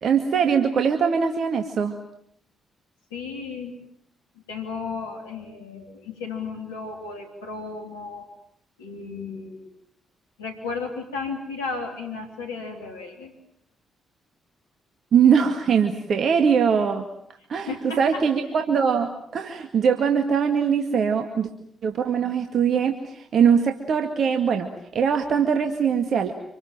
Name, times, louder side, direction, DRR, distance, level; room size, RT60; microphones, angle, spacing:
voice 1, 0.0-2.0 15.1-17.1 17.5-21.5 21.8-26.3, right 7 dB, 60° right, 6 dB, 2.1 m, -22 dB
voice 2, 3.1-3.8 4.5-8.3 8.8-9.7 10.4-13.3 17.7-18.2, left 4 dB, 90° left, 3 dB, 3.4 m, -34 dB
26.5 x 25.5 x 7.6 m, 0.69 s
hypercardioid pair, 40°, 0 cm